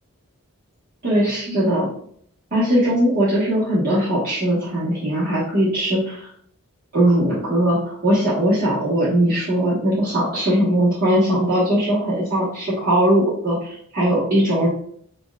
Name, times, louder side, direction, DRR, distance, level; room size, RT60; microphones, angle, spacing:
voice 1, 1.0-1.9 2.5-6.3 6.9-14.7, right 1 dB, 45° right, -9 dB, 1.4 m, -20 dB
6.6 x 2.4 x 2.4 m, 0.63 s
head